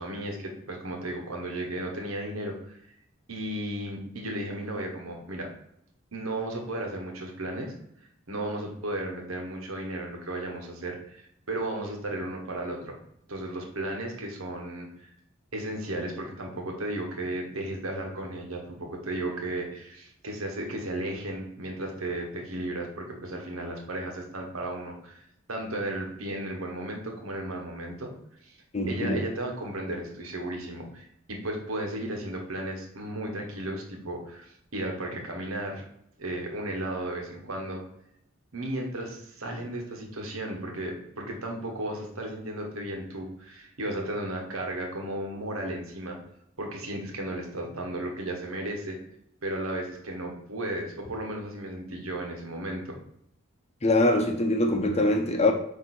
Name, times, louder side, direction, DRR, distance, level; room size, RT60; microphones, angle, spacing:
voice 1, 0.0-2.8 3.3-5.5 6.1-7.7 8.3-12.9 13.3-15.1 15.5-25.2 25.5-28.1 28.4-35.8 36.2-37.8 38.5-46.2 46.6-49.0 49.4-53.0, right 1 dB, 85° right, 1 dB, 1.4 m, -34 dB
voice 2, 28.7-29.2 53.8-55.5, left 2 dB, 30° left, 4 dB, 0.8 m, -23 dB
8.7 x 2.9 x 4.3 m, 0.74 s
head